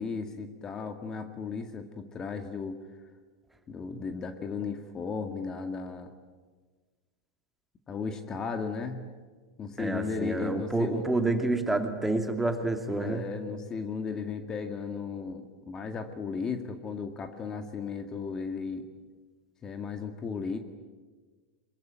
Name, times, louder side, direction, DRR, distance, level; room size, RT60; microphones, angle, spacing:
voice 1, 0.0-2.8 3.7-6.1 7.9-9.0 9.6-11.1 13.0-18.8 19.6-20.6, left 5 dB, 30° left, 7 dB, 2.0 m, -35 dB
voice 2, 9.8-13.2, right 2 dB, 5° right, 6 dB, 2.5 m, -28 dB
22.5 x 22.5 x 9.3 m, 1.4 s
hypercardioid pair, 95°, 2 cm